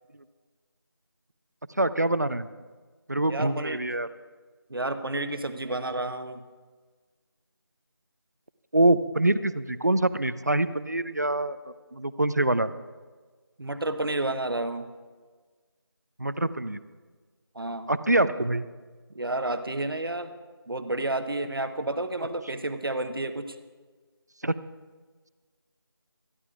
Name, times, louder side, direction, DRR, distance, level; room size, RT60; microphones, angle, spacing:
voice 1, 1.8-2.5 3.1-4.1 8.7-12.7 16.2-16.8 17.9-18.7 24.4-24.5, right 1 dB, 45° right, 15 dB, 0.4 m, -25 dB
voice 2, 3.3-3.8 4.7-6.4 13.6-14.9 17.5-17.9 19.1-20.3 20.7-23.6, right 2 dB, 60° right, 9 dB, 1.0 m, -30 dB
25.0 x 11.0 x 2.4 m, 1.4 s
figure-of-eight pair, 175°, 13 cm